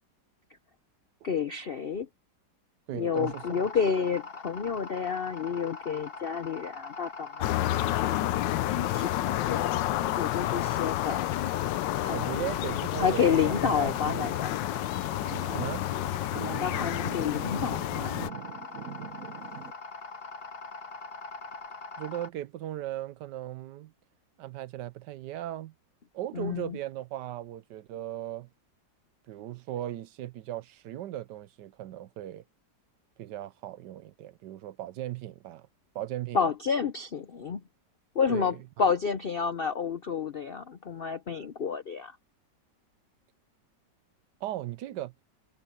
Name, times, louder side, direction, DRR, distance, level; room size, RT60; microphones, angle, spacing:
voice 1, 1.2-2.1 2.9-8.3 8.8-9.8 10.2-11.3 12.0-12.5 13.0-14.6 16.4-18.1 26.3-26.8 36.3-37.6 38.1-42.2, left 6 dB, 60° left, 0.5 m, -30 dB
voice 2, 2.9-3.6 3.9-4.0 12.1-14.3 15.5-15.8 22.0-23.9 24.4-25.7 26.1-28.5 29.3-32.4 33.2-35.7 35.9-36.4 38.3-38.6 44.4-45.1, right 13 dB, 75° right, 1.2 m, -37 dB
sound 1, 3.1-22.3, left 4 dB, 35° left, 1.2 m, -42 dB
sound 2, 7.4-18.3, left 15 dB, 85° left, 1.3 m, -30 dB
sound 3, 14.8-19.7, right 7 dB, 55° right, 1.5 m, -42 dB
omnidirectional pair, 1.9 m